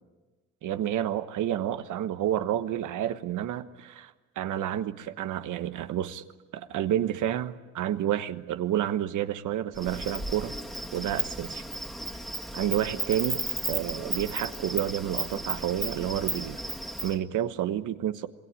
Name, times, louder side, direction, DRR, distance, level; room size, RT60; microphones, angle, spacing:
voice 1, 0.6-6.2 6.5-10.5 10.9-11.6 12.5-13.4 13.7-16.6 17.0-18.3, right 11 dB, 80° right, 10 dB, 1.3 m, -30 dB
Insect, 9.8-17.2, right 1 dB, ahead, 2.3 m, -34 dB
27.0 x 20.5 x 9.0 m, 1.2 s
cardioid pair, 90°, 30 cm